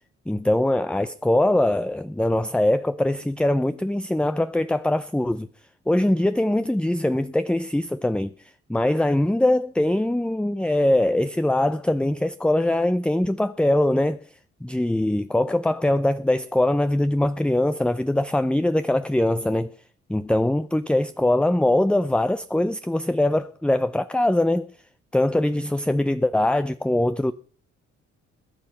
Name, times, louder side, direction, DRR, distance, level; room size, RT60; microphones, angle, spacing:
voice 1, 0.3-5.5 5.9-14.2 14.6-19.7 20.1-24.7 25.1-27.3, left 1 dB, 5° left, 0.6 m, -22 dB
21.5 x 8.5 x 5.5 m
cardioid pair, 90°, 30 cm